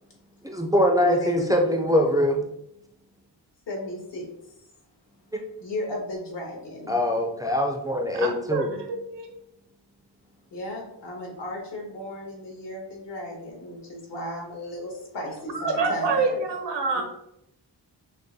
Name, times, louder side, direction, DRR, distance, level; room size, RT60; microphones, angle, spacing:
voice 1, 0.4-2.4 5.3-5.4 6.9-8.7, left 1 dB, 10° right, 2 dB, 0.3 m, -23 dB
voice 2, 1.0-1.7 3.7-4.3 5.6-7.0 10.5-16.4 16.9-17.0, left 1 dB, 80° left, -2 dB, 1.5 m, -35 dB
voice 3, 8.1-9.3 15.5-17.0, right 3 dB, 85° right, 4 dB, 0.9 m, -27 dB
6.3 x 2.2 x 2.6 m, 0.79 s
wide cardioid pair, 130°, 41 cm